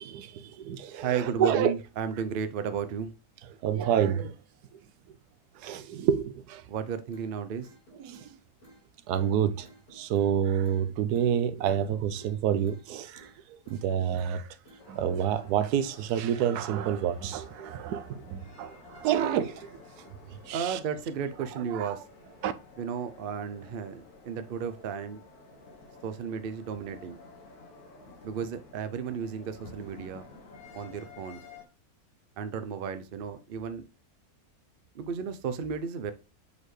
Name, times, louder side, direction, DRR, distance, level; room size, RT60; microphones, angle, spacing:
voice 1, 0.0-1.7 3.6-4.3 5.6-6.6 8.0-8.3 9.1-13.3 13.7-14.5 14.9-19.7 20.4-20.8 21.7-21.9 22.4-22.5, right 9 dB, 90° right, 1.1 m, -28 dB
voice 2, 0.9-3.1 6.7-7.7 20.5-22.0 22.8-25.2 26.0-27.2 28.2-30.3 30.7-31.4 32.4-33.9 34.9-36.1, right 7 dB, 55° right, 0.6 m, -33 dB
sound 1, 7.1-7.3 7.6-8.3 8.6-8.8 9.1-9.3 9.6-10.3 10.6-10.8 11.1-11.3 11.6-12.3 12.6-12.8 13.1-13.3 13.6-14.3 14.6-14.8, right 1 dB, 45° left, 4.3 m, -55 dB
sound 2, 14.8-31.6, left 3 dB, 75° left, 2.1 m, -51 dB
7.3 x 4.2 x 3.2 m
omnidirectional pair, 1.6 m